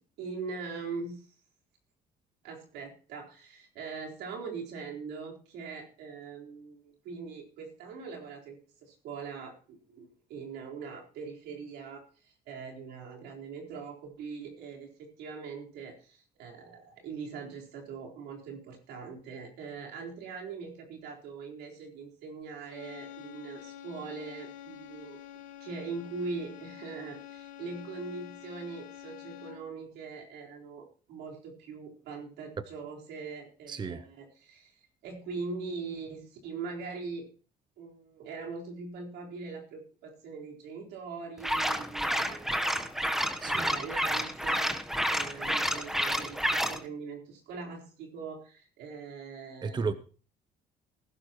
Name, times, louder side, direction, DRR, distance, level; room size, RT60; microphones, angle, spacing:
voice 1, 0.2-1.3 2.4-25.2 25.6-37.3 37.8-42.5 43.4-44.8 45.1-49.9, right 4 dB, 85° right, 4.2 m, -42 dB
sound 1, 22.7-29.8, left 11 dB, 55° left, 1.9 m, -47 dB
voice 2, 33.7-34.1 43.4-43.8 49.6-49.9, right 5 dB, 25° right, 0.8 m, -33 dB
sound 2, 41.4-46.8, equal, ahead, 1.1 m, -30 dB
19.5 x 11.5 x 3.0 m
cardioid pair, 110°, 17 cm